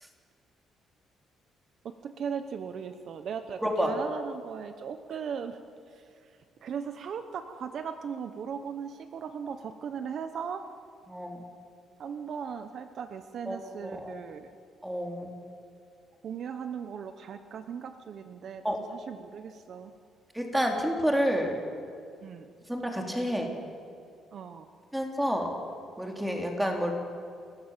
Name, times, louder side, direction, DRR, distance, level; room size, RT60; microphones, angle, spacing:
voice 1, 1.8-5.6 5.9-6.0 6.6-10.6 12.0-14.5 16.2-19.9 22.2-22.5 24.3-24.7, right 7 dB, 55° right, 9 dB, 1.0 m, -38 dB
voice 2, 3.6-3.9 11.1-11.4 13.5-14.1 14.8-15.3 18.6-18.8 20.3-21.6 22.7-23.5 24.9-25.5 26.0-26.9, equal, 5° right, 2 dB, 3.3 m, -29 dB
30.0 x 14.5 x 7.4 m, 2.3 s
cardioid pair, 130°, 0 cm